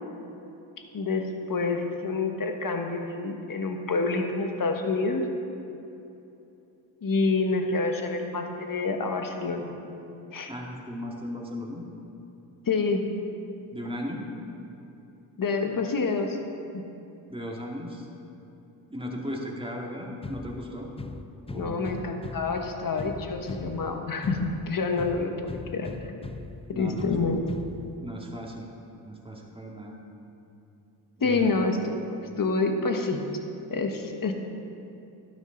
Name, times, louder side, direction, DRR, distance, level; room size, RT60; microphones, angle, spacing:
voice 1, 0.9-5.3 7.0-9.7 10.3-10.5 12.7-13.1 15.4-16.4 16.7-16.8 21.5-26.2 26.7-27.4 31.2-33.2 33.7-34.3, left 3 dB, 45° left, 4 dB, 1.4 m, -27 dB
voice 2, 10.5-11.9 13.7-14.3 17.3-18.1 18.9-20.9 21.5-21.8 26.7-27.1 28.0-28.7 29.0-30.0 31.2-31.5, equal, 10° right, -1 dB, 2.2 m, -36 dB
sound 1, 20.2-28.2, left 3 dB, 15° left, 0.5 m, -40 dB
12.0 x 10.0 x 4.0 m, 2.9 s
supercardioid pair, 55°, 45 cm